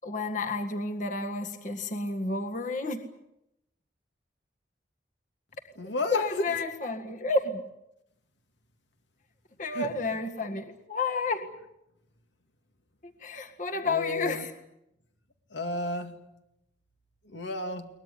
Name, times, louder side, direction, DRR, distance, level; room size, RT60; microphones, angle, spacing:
voice 1, 0.0-3.0 6.1-7.6 9.6-11.5 13.2-14.5, left 3 dB, 45° left, 5 dB, 1.7 m, -31 dB
voice 2, 5.8-6.5 9.7-9.9 13.8-14.5 15.5-16.1 17.2-17.9, left 2 dB, 75° left, 7 dB, 2.3 m, -32 dB
22.5 x 20.0 x 9.8 m, 0.83 s
head